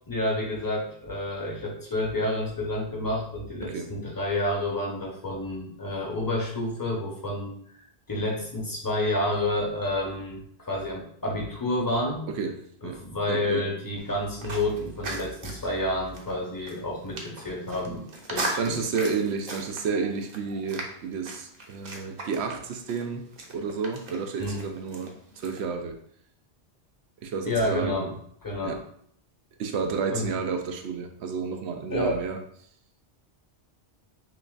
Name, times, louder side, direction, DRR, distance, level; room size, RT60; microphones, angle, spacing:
voice 1, 0.1-7.6 8.1-12.2 12.8-18.8 24.4-24.6 27.4-28.1 28.4-28.8 30.1-30.3 31.9-32.2, left 1 dB, 20° left, -2 dB, 0.8 m, -29 dB
voice 2, 12.3-13.0 13.3-13.7 18.6-26.0 27.2-28.1 28.6-28.8 29.6-32.4, right 5 dB, 80° right, 5 dB, 0.8 m, -31 dB
sound 1, 14.0-25.6, right 2 dB, 45° right, 0.7 m, -39 dB
6.0 x 2.4 x 2.4 m, 0.66 s
omnidirectional pair, 1.1 m